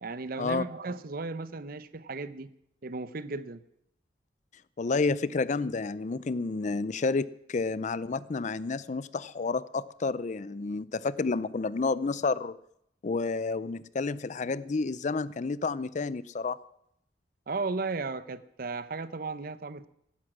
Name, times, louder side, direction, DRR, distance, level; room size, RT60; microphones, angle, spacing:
voice 1, 0.0-2.5 2.8-3.6 17.5-19.9, right 3 dB, 50° right, 15 dB, 0.7 m, -35 dB
voice 2, 4.8-12.6 13.0-16.6, left 4 dB, 40° left, 18 dB, 0.4 m, -30 dB
15.5 x 11.5 x 6.1 m, 0.75 s
head